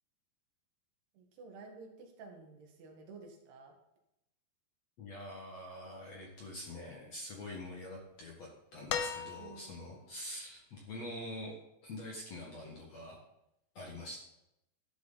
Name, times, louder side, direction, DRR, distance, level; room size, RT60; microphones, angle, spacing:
voice 1, 1.1-3.8 9.4-10.1 13.8-14.0, right 4 dB, 70° right, 2 dB, 3.6 m, -52 dB
voice 2, 5.0-11.5 11.8-13.2 13.7-14.2, left 1 dB, 50° left, -2 dB, 2.2 m, -45 dB
sound 1, 8.9-9.9 11.4-11.5, left 7 dB, 75° left, 2.7 m, -37 dB
12.0 x 11.0 x 4.1 m, 0.85 s
omnidirectional pair, 5.0 m